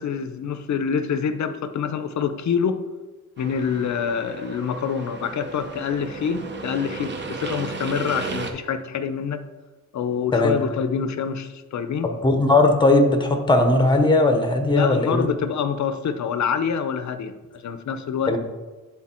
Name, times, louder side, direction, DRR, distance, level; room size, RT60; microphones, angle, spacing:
voice 1, 0.0-2.8 3.4-9.4 9.9-12.1 14.7-18.4, left 7 dB, 55° left, 10 dB, 0.6 m, -26 dB
sound 1, 3.4-8.5, right 4 dB, 35° right, 0.7 m, -34 dB
voice 2, 12.0-15.3 18.3-18.4, left 2 dB, 15° left, 5 dB, 0.7 m, -18 dB
9.7 x 3.8 x 4.3 m, 1.2 s
wide cardioid pair, 160°, 34 cm